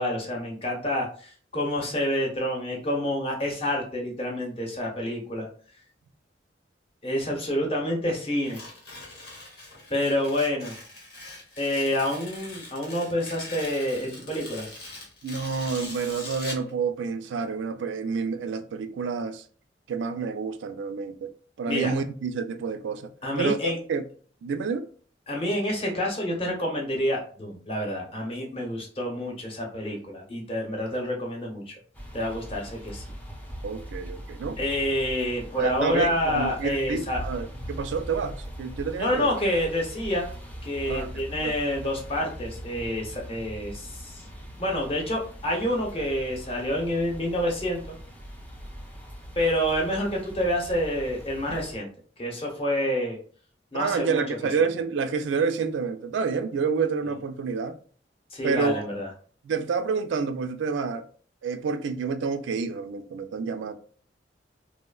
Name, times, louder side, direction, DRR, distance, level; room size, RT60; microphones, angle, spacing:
voice 1, 0.0-5.5 7.0-8.6 9.9-10.7 11.6-14.7 21.7-21.9 23.2-23.8 25.3-31.7 32.1-33.0 34.6-37.2 39.0-40.3 40.6-44.2 44.6-47.9 49.4-51.9 52.2-53.2 53.7-54.4 58.3-59.1, left 1 dB, 35° left, 0.8 m, -28 dB
Tearing, 8.4-16.7, left 2 dB, 65° left, 0.9 m, -42 dB
voice 2, 15.2-19.4 19.9-21.3 21.6-23.1 23.4-24.1 24.4-24.9 33.6-34.6 35.6-39.3 40.9-41.1 41.4-41.5 53.7-57.8 58.4-58.9 59.4-61.0 61.4-63.7, right 5 dB, 85° right, 0.3 m, -28 dB
sound 1, 31.9-51.8, equal, 10° left, 0.4 m, -41 dB
3.0 x 2.1 x 2.2 m
head